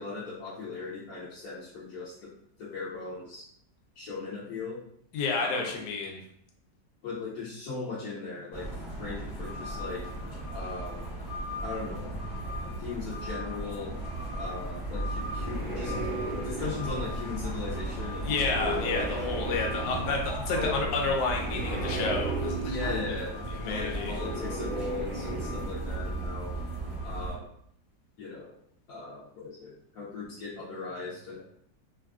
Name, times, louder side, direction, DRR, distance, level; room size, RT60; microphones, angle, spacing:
voice 1, 0.0-2.3 2.6-3.4 4.0-4.8 5.4-5.8 7.0-10.1 10.5-11.1 11.6-12.2 12.8-14.0 14.4-15.9 16.4-19.0 20.5-20.9 22.7-26.6 27.0-27.5 28.2-28.5 28.9-31.4, left 4 dB, 65° left, -7 dB, 1.0 m, -38 dB
voice 2, 5.1-6.2 18.2-22.8 23.1-23.2 23.7-24.1, left 3 dB, 85° left, 1 dB, 1.2 m, -30 dB
sound 1, 8.5-27.3, right 1 dB, 25° left, 0.8 m, -36 dB
sound 2, 14.9-26.7, right 1 dB, 50° right, 0.5 m, -37 dB
3.2 x 2.4 x 2.3 m, 0.68 s
omnidirectional pair, 1.8 m